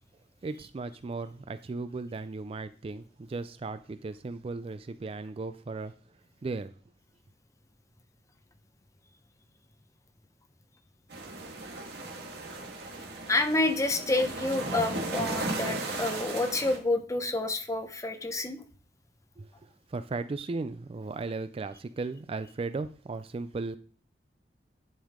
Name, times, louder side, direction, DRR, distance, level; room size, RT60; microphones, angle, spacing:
voice 1, 0.4-5.9 6.4-6.7 19.4-23.8, right 3 dB, 35° right, 0.4 m, -36 dB
sound 1, 11.1-16.8, right 2 dB, 65° right, 1.8 m, -36 dB
voice 2, 13.3-18.6, left 2 dB, 20° left, 0.9 m, -28 dB
10.0 x 5.4 x 3.7 m
head